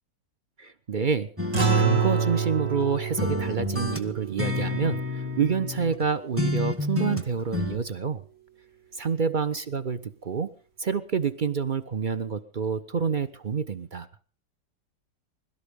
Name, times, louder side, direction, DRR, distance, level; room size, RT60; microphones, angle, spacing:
voice 1, 0.6-1.3 1.7-8.2 8.9-10.5 10.8-14.1, right 6 dB, 45° right, 13 dB, 0.6 m, -28 dB
sound 1, 1.4-2.9 3.2-6.0 6.4-7.8, left 2 dB, 10° right, 1.1 m, -30 dB
sound 2, 1.5-6.2, right 5 dB, 85° right, 5.2 m, -28 dB
21.5 x 12.5 x 5.1 m, 0.41 s
omnidirectional pair, 1.9 m